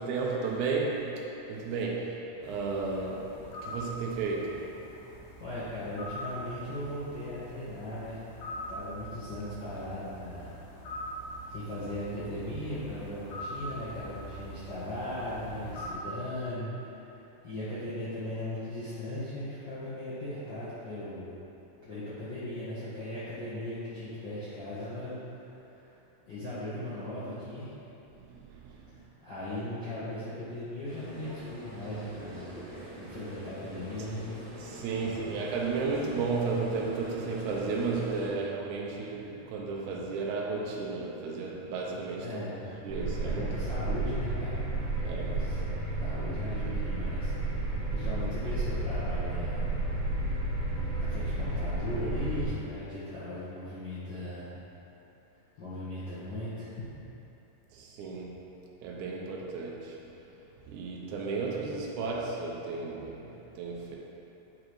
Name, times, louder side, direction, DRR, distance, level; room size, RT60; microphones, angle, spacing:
voice 1, 0.0-4.7 28.1-28.8 34.6-42.4 42.8-43.4 45.0-45.8 57.7-58.4 58.8-60.0 60.7-64.0, right 4 dB, 80° right, -2 dB, 2.0 m, -33 dB
sound 1, 2.4-15.9, equal, 85° left, 1.3 m, -43 dB
voice 2, 5.4-8.2 8.7-10.6 11.5-21.4 21.8-26.0 26.2-27.8 28.8-34.3 35.0-35.4 42.2-42.8 43.2-44.5 45.0-45.6 46.0-50.4 51.0-54.6 55.6-56.9, left 1 dB, 60° left, -12 dB, 1.1 m, -38 dB
sound 2, 30.8-38.3, equal, 40° right, 1.9 m, -44 dB
sound 3, 42.9-52.5, right 2 dB, 60° right, 2.3 m, -32 dB
9.4 x 5.0 x 3.1 m, 2.9 s
omnidirectional pair, 3.7 m